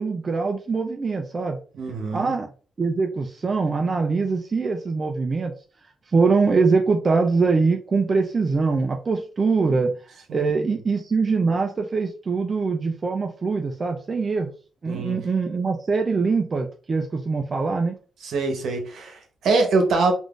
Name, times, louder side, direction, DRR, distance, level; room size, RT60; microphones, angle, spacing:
voice 1, 0.0-1.6 2.1-2.5 2.8-5.5 6.1-14.5 14.8-17.9, right 4 dB, 35° right, 3 dB, 0.4 m, -23 dB
voice 2, 1.7-2.3 10.3-10.8 14.9-15.2 18.2-20.1, right 3 dB, 75° right, 3 dB, 0.9 m, -24 dB
3.5 x 2.5 x 2.4 m, 0.38 s
cardioid pair, 90°, 0 cm